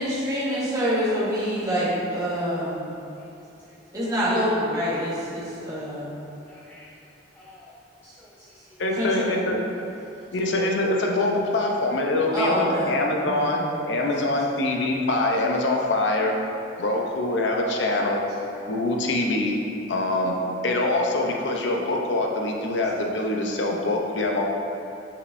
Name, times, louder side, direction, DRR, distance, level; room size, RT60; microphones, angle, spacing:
voice 1, 0.0-2.9 3.9-6.1 8.9-9.3 12.3-12.9 13.2-13.6, equal, 20° right, -9 dB, 1.5 m, -26 dB
voice 2, 3.2-4.1 6.5-7.0 7.3-7.7 8.0-8.8 10.0-10.2 14.0-14.4 20.0-20.1 23.9-24.0, left 1 dB, 10° left, -6 dB, 0.5 m, -52 dB
voice 3, 8.8-9.6 10.3-16.4 16.8-18.2 18.7-19.6 19.9-20.4 20.6-24.4, left 2 dB, 70° left, 0 dB, 0.7 m, -24 dB
6.4 x 5.7 x 2.6 m, 2.7 s
head